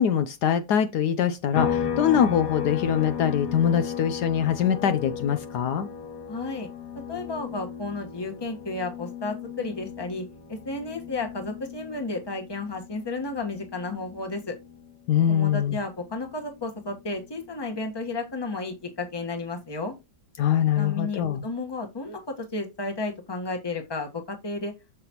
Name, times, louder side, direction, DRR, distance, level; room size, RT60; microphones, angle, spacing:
voice 1, 0.0-5.9 15.1-15.8 20.4-21.4, left 9 dB, 70° left, 1.2 m, -23 dB
sound 1, 1.5-15.1 15.4-17.6, left 7 dB, 55° left, 2.1 m, -35 dB
voice 2, 6.3-6.7 7.1-14.5 15.3-19.9 20.7-24.7, left 3 dB, 15° left, 1.2 m, -33 dB
6.9 x 6.8 x 2.9 m
omnidirectional pair, 1.9 m